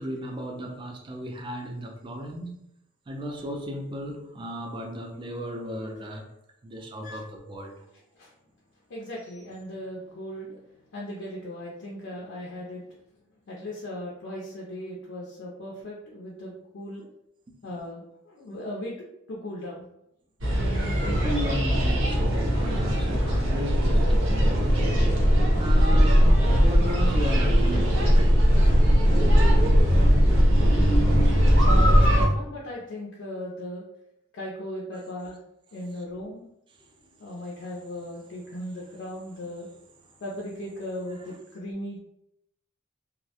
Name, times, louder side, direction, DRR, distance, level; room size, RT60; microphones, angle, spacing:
voice 1, 0.0-2.5 3.1-6.3 6.6-7.8 21.1-25.0 25.6-28.7 30.7-30.8 34.9-35.2 41.3-41.4, equal, 25° right, 0.3 m, -35 dB
voice 2, 8.9-10.6 10.9-12.9 13.5-17.1 17.6-18.9 19.3-19.8 31.6-33.8 34.3-35.4 35.7-36.5 37.2-39.7 40.2-42.0, left 1 dB, 65° left, 0.4 m, -37 dB
sound 1, 20.4-32.3, equal, 80° right, 0.7 m, -20 dB
2.3 x 2.1 x 2.7 m
head